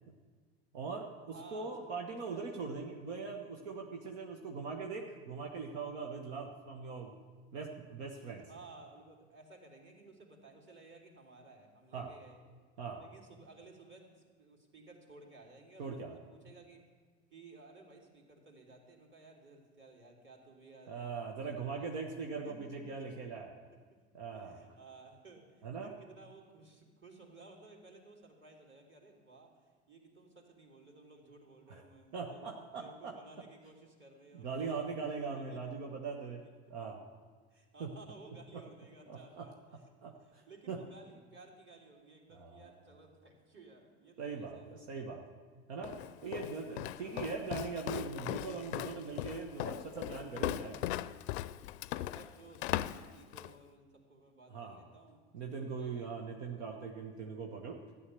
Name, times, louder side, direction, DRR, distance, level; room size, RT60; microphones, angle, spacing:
voice 1, 0.7-7.2 7.5-8.4 11.9-12.1 12.8-13.1 15.8-16.2 20.9-23.5 24.1-24.6 25.6-25.9 31.7-31.8 32.1-33.1 34.3-36.4 36.7-37.0 37.8-37.9 38.5-38.6 39.1-39.5 40.0-40.4 40.7-40.8 42.3-42.7 44.2-45.2 45.7-46.0 46.2-50.8 54.5-54.8 55.3-57.8, right 5 dB, 80° right, 2 dB, 1.2 m, -41 dB
voice 2, 1.3-1.9 2.3-2.5 4.0-4.1 8.5-12.4 12.9-16.9 17.3-22.1 22.4-23.2 23.7-24.0 24.3-32.4 32.7-34.9 35.3-35.8 36.2-36.5 37.5-39.8 40.2-44.8 47.0-47.3 51.9-56.1, right 3 dB, 35° right, 0 dB, 3.2 m, -57 dB
Walk footsteps, 45.8-53.6, left 14 dB, 80° left, 0.5 m, -39 dB
12.5 x 10.0 x 6.9 m, 1.5 s
hypercardioid pair, 70°, 33 cm